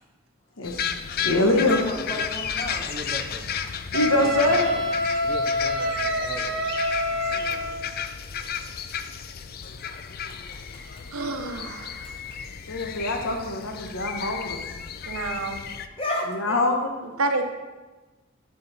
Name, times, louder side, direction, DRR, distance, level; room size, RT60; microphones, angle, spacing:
voice 1, 0.6-1.8 3.9-4.7 12.7-14.6 16.3-16.9, left 2 dB, 70° left, 3 dB, 1.1 m, -24 dB
sound 1, 0.6-15.9, left 7 dB, 45° left, 0.4 m, -33 dB
voice 2, 1.2-2.9 3.7-3.8 4.1-4.9 7.3-7.8 10.7-10.8 16.0-16.6, left 1 dB, 25° left, 0 dB, 1.3 m, -34 dB
voice 3, 2.9-3.5 5.2-6.6, right 1 dB, 35° right, 5 dB, 0.6 m, -39 dB
Wind instrument woodwind instrument, 3.9-7.8, left 1 dB, 55° right, 0.9 m, -27 dB
voice 4, 11.1-12.1 15.1-15.6 17.2-17.4, right 3 dB, 85° right, 4 dB, 0.9 m, -28 dB
8.0 x 6.8 x 4.2 m, 1.2 s
head